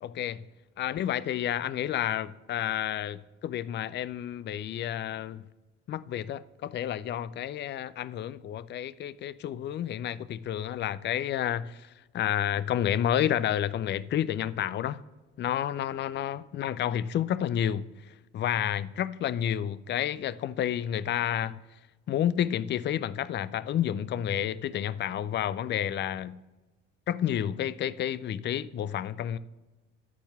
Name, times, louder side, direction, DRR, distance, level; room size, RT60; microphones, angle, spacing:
voice 1, 0.0-0.4 0.8-3.2 3.4-5.4 5.9-15.0 15.4-21.6 22.1-26.4 27.1-29.4, left 10 dB, 30° left, 0.4 m, -30 dB
10.0 x 4.5 x 7.2 m
hypercardioid pair, 50°, 37 cm